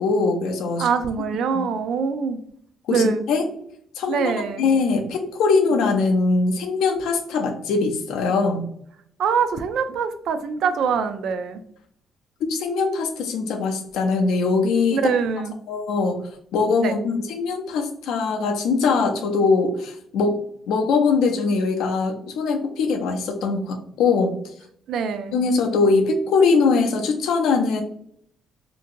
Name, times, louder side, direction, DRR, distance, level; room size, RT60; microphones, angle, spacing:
voice 1, 0.0-0.9 1.5-1.7 2.9-3.4 4.0-4.3 4.6-8.7 12.4-15.0 15.7-16.2 16.5-20.4 20.7-24.4 25.3-27.8, left 4 dB, 85° left, 5 dB, 0.5 m, -21 dB
voice 2, 0.8-2.4 2.9-3.2 4.1-4.6 9.2-11.6 14.9-15.5 16.8-17.0 24.9-25.4, right 6 dB, 75° right, 10 dB, 0.3 m, -24 dB
2.9 x 2.6 x 2.5 m, 0.67 s
cardioid pair, 85°, 0 cm